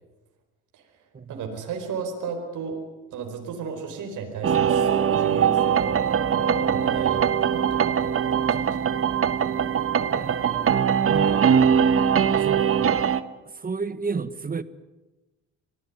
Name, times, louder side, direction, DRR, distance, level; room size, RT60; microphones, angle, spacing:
voice 1, 1.3-2.8 3.1-8.2 8.5-8.8, right 5 dB, 80° right, 4.8 m, -34 dB
sound 1, 4.4-13.2, right 7 dB, 45° right, 1.2 m, -21 dB
voice 2, 10.1-10.7 11.1-11.5 12.4-13.0 13.6-14.6, right 5 dB, 30° right, 1.3 m, -32 dB
26.0 x 18.5 x 9.8 m
cardioid pair, 90°, 30 cm